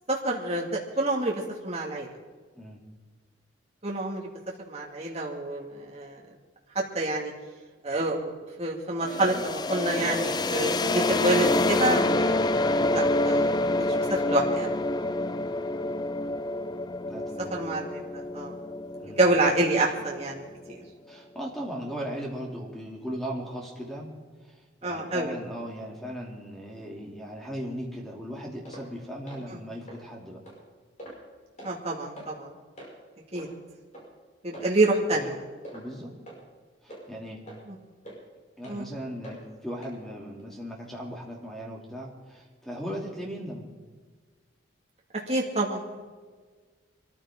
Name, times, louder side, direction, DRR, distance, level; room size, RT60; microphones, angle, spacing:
voice 1, 0.1-2.1 3.8-4.3 4.7-6.2 6.7-7.3 7.8-8.3 8.6-12.5 12.9-13.6 14.1-14.7 17.5-18.0 18.3-18.6 19.0-20.8 24.8-25.4 29.5-29.6 31.6-32.5 33.3-33.5 34.4-35.5 37.7-37.8 38.7-38.9 45.3-46.0, right 2 dB, 30° right, -3 dB, 2.1 m, -27 dB
sound 1, 9.0-20.7, left 2 dB, 20° left, 0.4 m, -27 dB
voice 2, 17.1-17.6 19.0-19.2 21.1-24.1 24.5-24.6 24.8-30.4 35.7-36.1 36.8-37.4 38.6-43.7, equal, ahead, -2 dB, 2.8 m, -37 dB
sound 2, 28.7-28.9 29.3-29.4 29.9-30.0 30.5-30.6 31.0-31.2 31.6-31.8 32.2-32.3 32.8-32.9 33.4-33.5 33.9-34.1 34.5-34.8 35.1-35.3 35.6-35.8 36.3-36.4 36.9-37.0 37.5-37.6 38.0-38.2 38.6-38.8 39.2-39.4 39.8-40.0 40.4-40.5, right 1 dB, 35° left, 6.1 m, -43 dB
23.0 x 14.5 x 3.8 m, 1.4 s
head